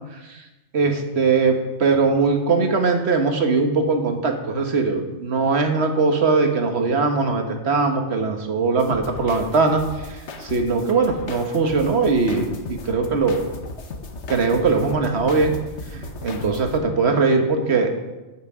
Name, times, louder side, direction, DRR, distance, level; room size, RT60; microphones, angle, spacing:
voice 1, 0.7-9.8 10.4-12.5 12.8-13.4 14.3-15.5 15.9-17.9, right 4 dB, 70° right, 5 dB, 1.5 m, -20 dB
sound 1, 8.8-16.8, left 3 dB, 80° left, 1.3 m, -36 dB
13.5 x 6.6 x 4.8 m, 1.1 s
omnidirectional pair, 1.2 m